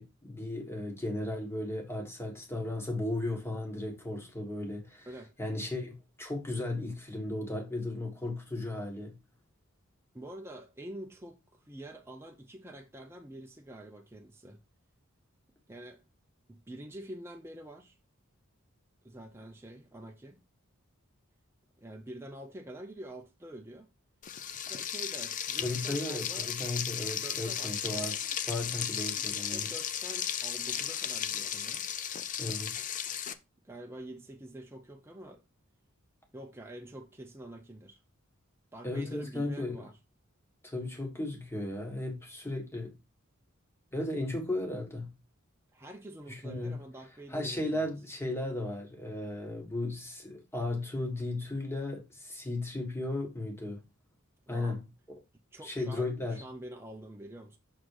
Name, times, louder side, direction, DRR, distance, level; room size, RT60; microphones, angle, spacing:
voice 1, 0.0-5.1 5.4-9.2 25.6-28.2 28.5-29.7 32.4-32.9 38.8-39.8 40.6-42.9 43.9-45.1 46.3-46.8 47.3-53.8 54.5-54.8 55.1-55.2 55.6-56.4, left 2 dB, 10° left, 1.5 m, -35 dB
voice 2, 10.1-14.6 15.7-16.0 16.5-18.0 19.0-20.4 21.8-23.9 24.5-26.5 27.1-28.1 29.1-31.9 33.6-35.4 36.3-38.0 38.7-40.0 45.7-47.9 54.5-54.8 55.5-57.6, right 1 dB, 10° right, 0.6 m, -47 dB
Frying (food), 24.2-33.3, left 9 dB, 40° left, 0.5 m, -35 dB
6.3 x 3.9 x 4.8 m
head